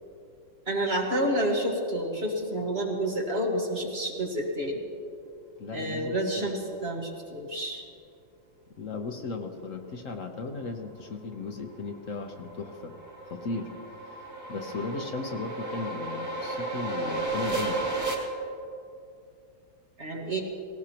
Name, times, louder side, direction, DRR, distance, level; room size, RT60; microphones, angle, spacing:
voice 1, 0.7-4.8 5.7-7.8 20.0-20.4, right 1 dB, 35° right, 0 dB, 1.5 m, -29 dB
voice 2, 5.6-6.5 8.8-12.9 13.3-13.7 14.5-17.8, left 4 dB, 50° left, 4 dB, 1.0 m, -36 dB
sound 1, 11.6-18.1, right 2 dB, 10° right, 1.6 m, -33 dB
18.0 x 18.0 x 2.9 m, 2.5 s
omnidirectional pair, 2.2 m